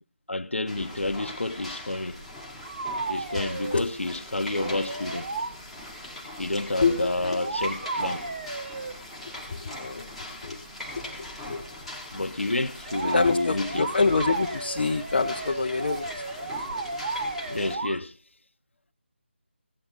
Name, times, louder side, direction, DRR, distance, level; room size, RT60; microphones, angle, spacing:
voice 1, 0.3-2.3 3.1-5.3 6.4-8.3 12.1-13.9 17.5-18.2, left 2 dB, 75° left, 1.1 m, -29 dB
sound 1, 0.7-17.8, left 1 dB, ahead, 2.1 m, -40 dB
sound 2, 2.1-2.2 2.6-3.9 4.5-5.5 6.8-9.0 12.9-18.0, right 3 dB, 50° right, 1.4 m, -33 dB
voice 2, 6.8-7.4 9.5-10.1 10.4-10.6 11.5-11.6 13.0-16.8 17.5-17.7, left 4 dB, 45° left, 0.8 m, -27 dB
16.5 x 10.5 x 3.8 m
figure-of-eight pair, 160°, 7 cm